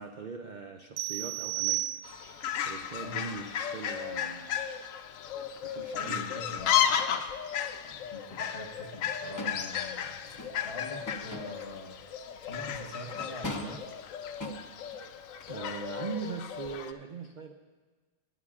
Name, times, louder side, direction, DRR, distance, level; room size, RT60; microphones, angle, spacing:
voice 1, 0.0-1.9 2.5-4.7 5.6-6.6 15.5-17.5, right 5 dB, 60° right, 4 dB, 0.5 m, -41 dB
sound 1, 1.0-2.5, right 18 dB, 90° right, 1.1 m, -33 dB
Fowl, 2.0-16.9, left 9 dB, 70° left, 0.9 m, -34 dB
voice 2, 5.8-6.9 7.8-12.0 12.5-13.8, left 2 dB, 45° left, 2 dB, 1.3 m, -43 dB
sound 2, 9.4-9.7 10.3-11.6 12.4-12.7 13.1-13.9 14.4-15.0 15.4-15.6, equal, 20° left, 0.5 m, -40 dB
20.5 x 9.2 x 2.4 m, 1.4 s
omnidirectional pair, 1.5 m